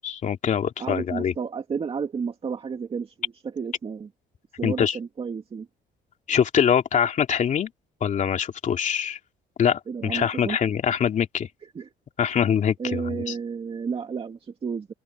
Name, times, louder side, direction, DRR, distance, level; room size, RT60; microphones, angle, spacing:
voice 1, 0.0-1.3 4.6-5.0 6.3-7.7 8.0-9.2 9.6-11.5 12.2-13.4, left 8 dB, 45° left, 2.8 m, -24 dB
voice 2, 0.8-4.1 4.6-5.7 9.9-10.6 11.7-11.9 12.8-14.9, right 6 dB, 35° right, 2.3 m, -31 dB
open air
cardioid pair, 110°, 17 cm